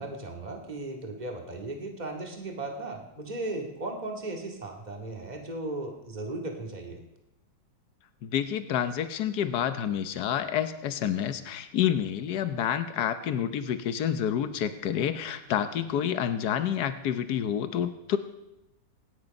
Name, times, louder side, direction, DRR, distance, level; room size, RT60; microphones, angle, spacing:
voice 1, 0.0-7.0, right 2 dB, 25° right, 2 dB, 2.2 m, -36 dB
voice 2, 8.2-18.2, left 9 dB, 80° left, 10 dB, 1.5 m, -28 dB
28.0 x 9.8 x 5.3 m, 0.92 s
omnidirectional pair, 1.7 m